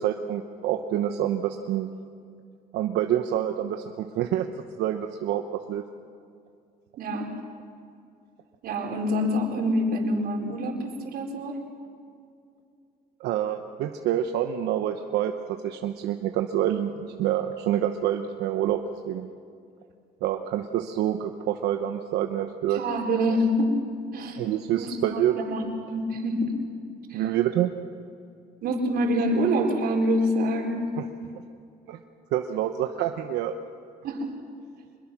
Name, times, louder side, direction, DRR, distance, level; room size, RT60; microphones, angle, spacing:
voice 1, 0.0-1.9 2.7-4.5 4.8-5.8 13.2-15.3 15.6-19.3 20.2-22.8 24.4-25.4 27.1-27.7 31.0-31.1 31.9-32.0 32.3-33.5, right 11 dB, 80° right, 6 dB, 1.0 m, -27 dB
voice 2, 7.0-7.4 8.6-11.6 22.7-23.8 24.1-24.4 24.8-25.6 25.9-26.6 27.1-27.2 28.6-31.0 34.0-34.4, equal, 65° right, 0 dB, 4.3 m, -26 dB
25.5 x 21.5 x 6.1 m, 2.4 s
cardioid pair, 110°, 17 cm